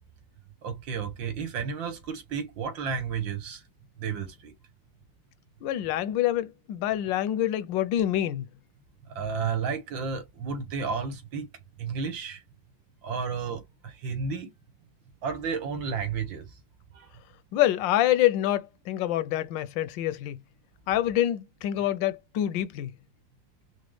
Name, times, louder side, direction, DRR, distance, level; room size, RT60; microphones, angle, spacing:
voice 1, 0.6-3.6 4.0-4.5 9.1-11.5 11.8-12.4 13.0-14.5 15.2-16.4 16.9-17.1, right 6 dB, 90° right, 2.0 m, -32 dB
voice 2, 5.6-8.5 17.5-20.4 20.9-22.9, left 13 dB, 80° left, 1.3 m, -26 dB
5.1 x 2.1 x 3.1 m
omnidirectional pair, 2.0 m